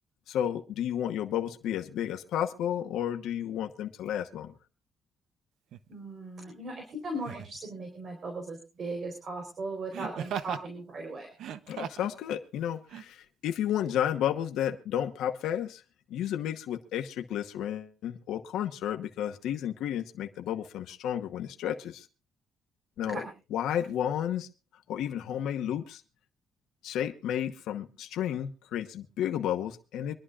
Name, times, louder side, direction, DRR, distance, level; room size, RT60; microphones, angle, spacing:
voice 1, 0.3-4.5 11.7-15.8 16.1-22.1 23.0-23.2 23.5-24.5 24.9-26.0 26.8-30.1, left 10 dB, 80° left, 5 dB, 1.1 m, -32 dB
Laughter, 5.7-5.9 7.2-7.6 9.9-10.7 11.3-12.1 12.9-13.0, right 9 dB, 70° right, 0.8 m, -37 dB
voice 2, 5.9-11.3 23.0-23.3, right 2 dB, 40° right, 3 dB, 4.1 m, -38 dB
25.5 x 11.5 x 2.5 m, 0.31 s
cardioid pair, 140°, 0 cm